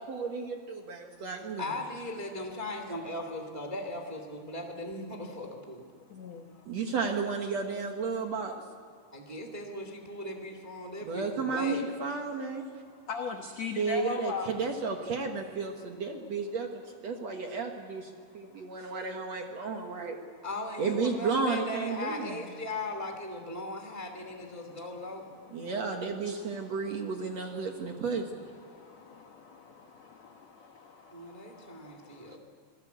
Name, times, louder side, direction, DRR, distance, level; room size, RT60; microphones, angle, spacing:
voice 1, 0.0-1.7 6.6-8.6 11.0-12.6 13.7-20.2 20.8-22.3 25.5-28.4 32.3-32.4, right 4 dB, 70° right, 3 dB, 1.6 m, -33 dB
voice 2, 1.6-5.8 9.1-11.8 20.4-25.4 31.1-32.4, left 1 dB, 40° right, 4 dB, 0.5 m, -38 dB
voice 3, 6.1-6.4 13.1-14.5 26.3-26.4 28.7-32.4, left 5 dB, 75° left, 4 dB, 1.5 m, -40 dB
26.5 x 18.5 x 8.2 m, 2.2 s
omnidirectional pair, 5.2 m